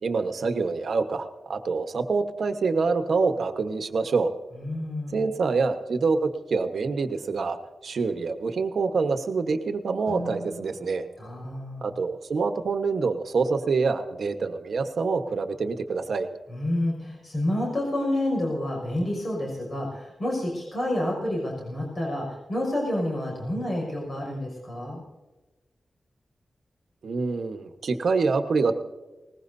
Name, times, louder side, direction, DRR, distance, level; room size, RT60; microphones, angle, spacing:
voice 1, 0.0-4.3 5.1-7.6 7.8-11.0 11.8-16.3 27.0-28.8, right 4 dB, 70° right, 7 dB, 1.2 m, -26 dB
voice 2, 4.5-5.2 11.2-11.9 16.5-25.0, left 1 dB, 35° left, -2 dB, 5.7 m, -29 dB
Guitar, 10.0-12.6, left 1 dB, 65° left, 7.0 m, -43 dB
21.0 x 20.0 x 2.7 m, 1.2 s
wide cardioid pair, 160°, 0 cm